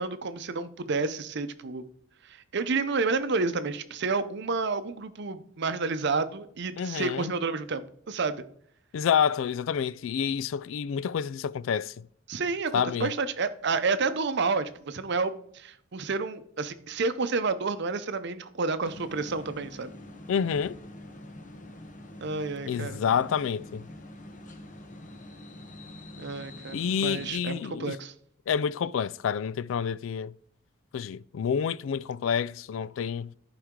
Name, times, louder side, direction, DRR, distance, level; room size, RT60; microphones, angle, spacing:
voice 1, 0.0-1.8 2.3-8.4 12.3-19.9 22.2-23.0 26.2-28.1, right 4 dB, 60° right, 0.7 m, -30 dB
voice 2, 6.8-7.3 8.9-12.1 12.7-13.1 20.3-20.8 22.7-23.8 26.7-28.0 28.5-30.3 30.9-33.3, left 7 dB, 80° left, 0.3 m, -28 dB
sound 1, 18.8-27.3, left 1 dB, 40° left, 1.0 m, -45 dB
14.0 x 4.8 x 3.7 m
head